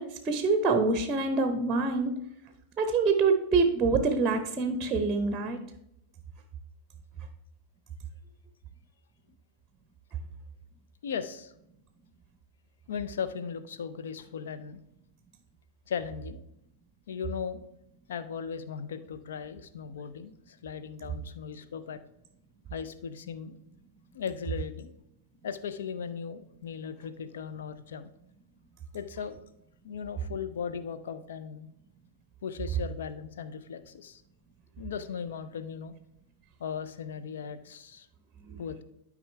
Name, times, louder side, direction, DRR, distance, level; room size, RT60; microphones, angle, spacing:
voice 1, 0.0-2.2 2.8-5.6 38.4-38.6, right 4 dB, 20° right, 8 dB, 0.8 m, -26 dB
voice 2, 11.0-11.5 12.9-14.8 15.9-16.4 17.1-17.6 18.1-22.0 22.7-23.6 24.1-24.9 25.4-28.1 28.9-29.4 29.8-31.7 32.4-34.2 34.8-36.0 36.6-38.1 38.6-38.8, left 6 dB, 60° left, 11 dB, 0.6 m, -37 dB
12.0 x 4.9 x 3.3 m, 0.78 s
figure-of-eight pair, 90°, 0 cm